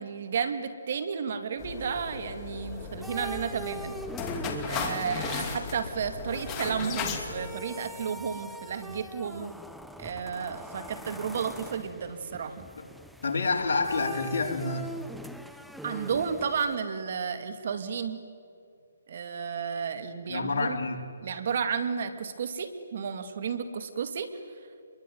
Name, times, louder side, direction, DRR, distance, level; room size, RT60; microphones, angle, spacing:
voice 1, 0.0-4.0 4.6-9.5 10.0-12.7 15.8-18.2 19.1-20.8 21.2-24.3, right 6 dB, 50° right, 9 dB, 2.4 m, -32 dB
sound 1, 1.6-7.5, left 5 dB, 20° left, 2.5 m, -36 dB
sound 2, 2.7-16.8, right 1 dB, ahead, 0.7 m, -43 dB
voice 2, 13.2-14.9 20.3-21.1, left 3 dB, 65° left, 2 dB, 4.1 m, -28 dB
26.5 x 22.5 x 9.4 m, 2.3 s
hypercardioid pair, 155°, 0 cm